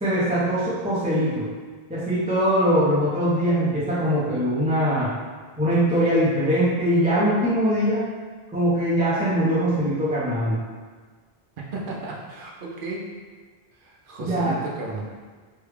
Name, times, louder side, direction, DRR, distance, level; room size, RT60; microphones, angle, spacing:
voice 1, 0.0-1.5 1.9-5.1 5.6-8.0 8.5-10.6 14.2-14.5, equal, 10° right, -10 dB, 0.6 m, -22 dB
voice 2, 11.7-13.0 13.7-15.0, right 2 dB, 60° right, -3 dB, 0.8 m, -34 dB
3.4 x 2.3 x 3.3 m, 1.4 s
omnidirectional pair, 1.0 m